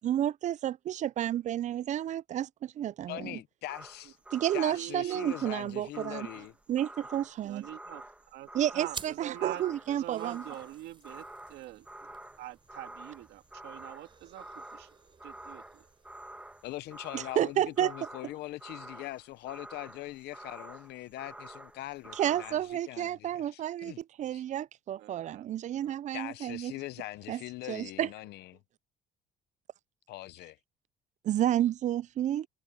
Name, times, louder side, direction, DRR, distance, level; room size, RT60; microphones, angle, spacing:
voice 1, 0.0-3.4 4.3-6.3 6.7-7.7 8.5-10.4 17.1-17.9 22.1-26.7 27.3-27.4 27.7-28.1 31.2-32.5, right 11 dB, 45° right, 0.4 m, -31 dB
voice 2, 3.1-4.2 4.5-6.5 16.6-24.0 24.3-24.4 26.1-28.6 30.1-30.6, left 16 dB, 75° left, 0.8 m, -42 dB
sound 1, 3.7-22.7, right 1 dB, 5° right, 1.8 m, -48 dB
voice 3, 4.4-5.4 7.4-12.1 12.4-14.9 15.2-15.8 25.0-25.5 25.7-25.9, right 14 dB, 85° right, 1.9 m, -45 dB
sound 2, 8.9-17.9, right 5 dB, 30° right, 4.4 m, -52 dB
cardioid pair, 110°, 17 cm